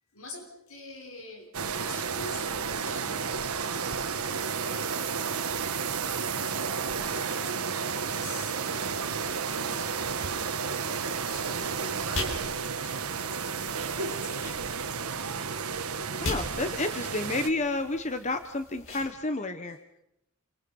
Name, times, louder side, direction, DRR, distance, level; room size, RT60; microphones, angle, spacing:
voice 1, 0.1-3.3 4.5-6.3 6.9-10.4 11.2-13.3 13.6-14.4 17.8-18.2, left 2 dB, 80° left, 1 dB, 6.1 m, -46 dB
sound 1, 1.5-17.5, right 6 dB, 90° right, 1.4 m, -32 dB
sound 2, 9.0-19.1, left 2 dB, 60° left, 5.7 m, -42 dB
voice 2, 16.2-19.8, left 2 dB, 30° left, 9 dB, 1.0 m, -30 dB
28.0 x 26.0 x 5.4 m, 0.82 s
head